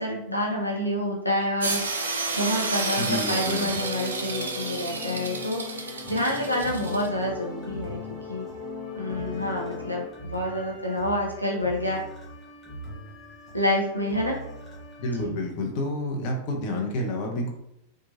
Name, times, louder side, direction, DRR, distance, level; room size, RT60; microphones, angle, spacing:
voice 1, 0.0-1.8 2.4-8.0 8.3-8.4 8.9-12.0 13.5-14.4 15.2-15.3, left 1 dB, 90° left, -2 dB, 0.5 m, -28 dB
sound 1, 1.6-7.1, right 3 dB, 70° right, 0.4 m, -31 dB
voice 2, 3.0-3.8 15.0-17.5, left 1 dB, 45° left, 1 dB, 0.6 m, -29 dB
sound 2, 3.0-10.1, left 4 dB, 10° right, 1.2 m, -38 dB
sound 3, 6.0-15.2, right 1 dB, 15° left, 1.0 m, -42 dB
2.9 x 2.3 x 2.6 m, 0.82 s
figure-of-eight pair, 90°, 0 cm